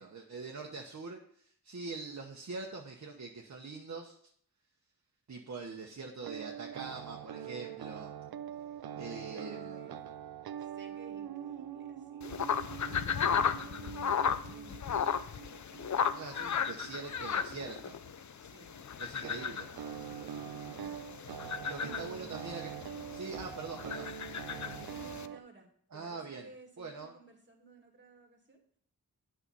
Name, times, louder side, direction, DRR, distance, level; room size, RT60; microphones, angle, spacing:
voice 1, 0.0-4.2 5.3-8.1 9.0-9.8 16.1-18.0 19.0-19.7 21.6-22.7 23.1-24.2 25.9-26.4 26.8-27.1, right 4 dB, 50° right, 0 dB, 1.0 m, -43 dB
sound 1, 6.2-18.1 19.2-25.4, right 9 dB, 80° right, 0.5 m, -44 dB
voice 2, 8.4-10.2 10.6-15.3 18.4-18.7 20.0-20.3 21.8-22.1 24.5-28.6, right 3 dB, 30° right, 2 dB, 2.1 m, -57 dB
sound 2, 12.2-25.3, left 7 dB, 50° left, 0.5 m, -35 dB
8.9 x 5.7 x 5.5 m, 0.63 s
wide cardioid pair, 90°, 37 cm